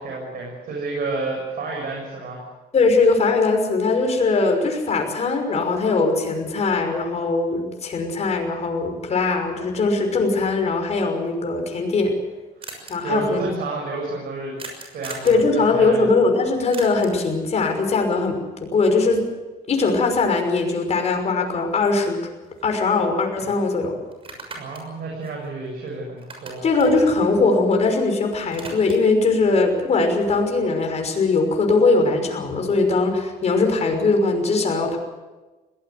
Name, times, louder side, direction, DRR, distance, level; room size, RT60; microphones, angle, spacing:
voice 1, 0.0-2.4 12.6-12.7 13.0-14.6 14.9-16.0 24.6-26.6, right 3 dB, 60° right, -1 dB, 7.1 m, -30 dB
voice 2, 2.7-12.2 12.9-13.4 15.2-18.4 18.7-19.2 19.7-22.2 22.6-24.0 26.6-35.0, left 3 dB, 40° left, 3 dB, 5.9 m, -20 dB
sound 1, 12.2-12.3 12.6-12.9 14.6-15.4 16.7-17.3 21.5-21.6 21.9-23.1 23.4-23.5 24.1-25.9 26.2-28.0 28.3-29.2, right 3 dB, 35° right, 6.4 m, -40 dB
21.5 x 18.5 x 8.0 m, 1.2 s
cardioid pair, 110°, 17 cm